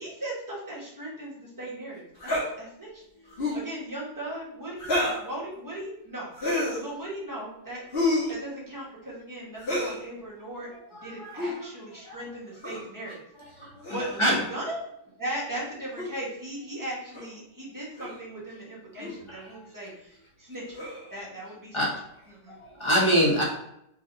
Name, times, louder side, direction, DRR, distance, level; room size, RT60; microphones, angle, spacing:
voice 1, 0.0-3.0 3.5-6.3 6.8-7.8 8.3-13.2 13.9-14.8 15.2-20.8 21.1-21.9 22.3-22.6, right 1 dB, 15° right, -5 dB, 1.2 m, -38 dB
sound 1, 2.2-2.5 3.3-3.7 4.8-5.3 6.3-6.8 7.9-8.3 9.6-10.0 11.3-11.6 12.6-12.9 13.8-14.3 16.0-16.1 17.1-17.3 18.0-18.2 19.0-19.2 20.7-21.1, left 2 dB, 35° left, 1.5 m, -29 dB
voice 2, 10.9-11.7 12.0-12.2 12.7-12.8 13.6-13.7 14.2-14.4 19.3-19.4 21.7-21.9 22.5-23.4, equal, 20° left, -4 dB, 1.2 m, -25 dB
3.8 x 3.4 x 3.9 m, 0.77 s
omnidirectional pair, 1.8 m